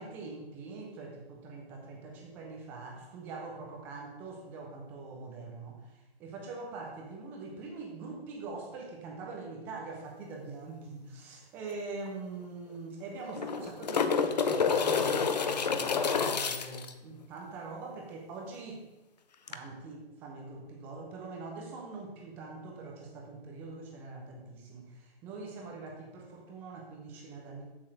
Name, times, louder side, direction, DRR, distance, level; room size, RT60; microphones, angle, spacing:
voice 1, 0.0-18.8 19.5-27.6, right 3 dB, 5° right, 0 dB, 0.6 m, -43 dB
sound 1, 11.7-11.8 12.1-12.2 13.2-16.9 19.5-19.6, left 6 dB, 40° left, 0.7 m, -28 dB
7.6 x 7.3 x 6.2 m, 1.0 s
figure-of-eight pair, 135°, 31 cm